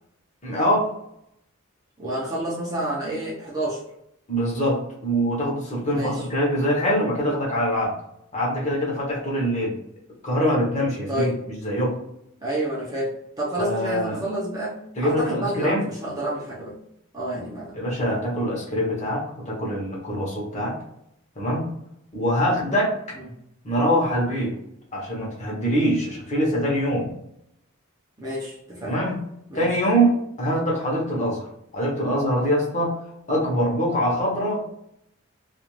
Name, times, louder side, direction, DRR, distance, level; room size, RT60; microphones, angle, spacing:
voice 1, 0.4-0.9 4.3-8.0 8.3-9.8 10.2-12.0 13.6-14.2 15.0-15.9 17.7-20.8 21.4-21.7 22.1-23.0 23.6-24.6 24.9-27.1 28.8-29.3 29.5-31.5 31.7-33.0 33.3-34.7, equal, 35° left, -3 dB, 0.9 m, -24 dB
voice 2, 2.0-3.8 5.9-6.2 11.1-11.4 12.4-16.8 17.1-17.8 23.2-23.3 28.2-29.0 29.5-29.7, right 1 dB, 15° right, -6 dB, 0.6 m, -29 dB
2.4 x 2.4 x 3.0 m, 0.76 s
head